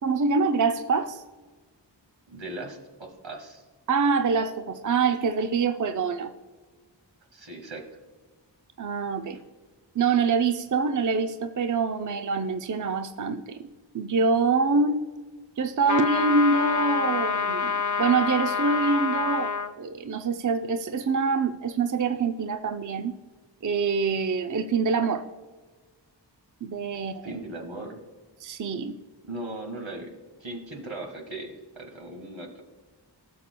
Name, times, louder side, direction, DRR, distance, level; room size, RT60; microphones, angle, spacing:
voice 1, 0.0-1.2 3.9-6.3 8.8-9.4 10.0-13.7 13.9-15.0 15.6-17.7 18.0-23.1 23.6-25.3 26.6-27.4 28.4-29.0, right 4 dB, 45° right, 7 dB, 0.5 m, -25 dB
voice 2, 2.3-3.6 7.3-7.8 27.0-28.0 29.2-30.1 30.4-32.6, right 2 dB, 85° right, 2 dB, 1.7 m, -38 dB
sound 1, 15.9-19.7, left 5 dB, 45° left, 0.5 m, -27 dB
16.5 x 6.8 x 2.2 m, 1.4 s
wide cardioid pair, 50°, 45 cm